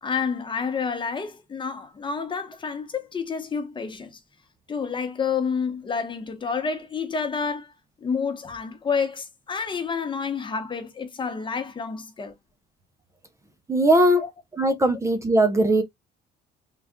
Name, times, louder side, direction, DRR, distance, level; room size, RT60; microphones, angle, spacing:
voice 1, 0.0-4.2 4.7-7.7 8.0-12.3 14.2-14.3, left 5 dB, 30° left, 1.0 m, -29 dB
voice 2, 13.7-14.2 14.6-15.8, right 1 dB, 15° right, 0.7 m, -19 dB
3.8 x 2.4 x 3.5 m
cardioid pair, 110°, 17 cm